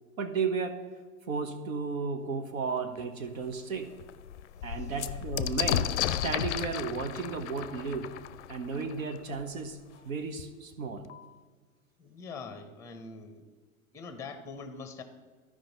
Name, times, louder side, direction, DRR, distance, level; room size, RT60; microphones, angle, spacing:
voice 1, 0.2-0.7 1.3-3.9 4.6-8.1 8.5-9.8 10.0-11.0, right 5 dB, 70° right, 8 dB, 1.2 m, -34 dB
sound 1, 3.0-3.1 3.5-3.6 3.9-9.4 10.4-10.5 10.7-11.4, left 11 dB, 55° left, 0.5 m, -34 dB
voice 2, 12.0-13.4 13.9-15.0, left 4 dB, 5° left, 9 dB, 0.7 m, -43 dB
13.0 x 5.1 x 4.0 m, 1.5 s
figure-of-eight pair, 95°, 43 cm